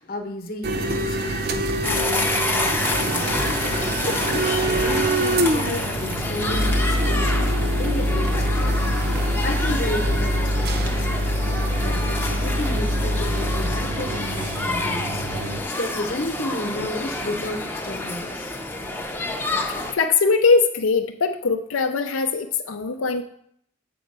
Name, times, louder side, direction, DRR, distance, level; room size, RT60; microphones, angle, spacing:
voice 1, 0.0-8.8 9.4-11.4 11.8-18.6, left 1 dB, 45° left, 5 dB, 1.0 m, -33 dB
sound 1, 0.6-15.6, right 1 dB, 50° right, 0.7 m, -24 dB
sound 2, 1.8-19.9, left 2 dB, 10° left, 0.6 m, -28 dB
voice 2, 19.9-23.2, left 4 dB, 85° left, 5 dB, 0.5 m, -21 dB
7.7 x 4.6 x 6.6 m, 0.69 s
head